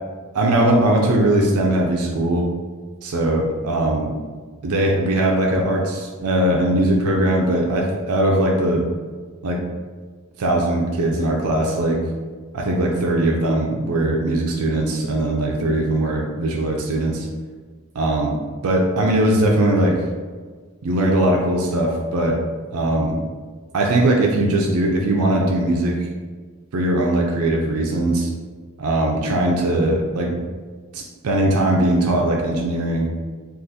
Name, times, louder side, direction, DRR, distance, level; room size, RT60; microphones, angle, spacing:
voice 1, 0.3-2.5 3.0-4.1 4.6-8.9 9.4-9.6 10.4-12.0 12.5-17.3 18.0-18.4 18.6-20.0 20.8-22.4 22.7-23.2 23.7-26.1 26.7-28.3 28.8-30.4 30.9-33.1, right 1 dB, 80° right, -1 dB, 0.4 m, -20 dB
3.7 x 2.4 x 2.7 m, 1.5 s
head